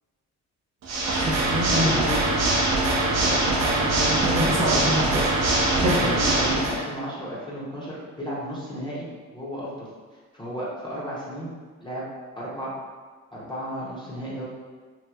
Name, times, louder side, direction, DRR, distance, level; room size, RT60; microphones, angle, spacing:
Water / Mechanisms, 0.8-6.8, right 2 dB, 60° right, 0.6 m, -23 dB
voice 1, 1.2-2.0 4.2-5.3 5.8-6.0, equal, 20° right, -6 dB, 0.7 m, -25 dB
voice 2, 1.8-2.2 3.1-4.1 5.8-9.9 10.3-11.5 11.8-12.0 12.4-12.7 13.3-14.4, equal, 15° left, -8 dB, 0.7 m, -33 dB
2.8 x 2.5 x 2.3 m, 1.5 s
cardioid pair, 90°, 30 cm